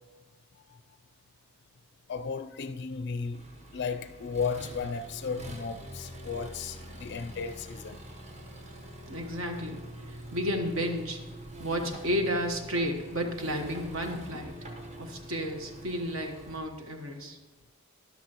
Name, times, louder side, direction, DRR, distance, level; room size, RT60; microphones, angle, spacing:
voice 1, 2.1-3.4 3.7-8.0, left 5 dB, 55° left, 0.4 m, -34 dB
Accelerating revving vroom, 3.3-16.6, right 1 dB, 30° right, 1.0 m, -45 dB
voice 2, 9.1-9.8 10.1-11.2 11.6-14.5 15.0-17.4, equal, 70° right, 1.2 m, -32 dB
13.0 x 11.0 x 3.0 m
head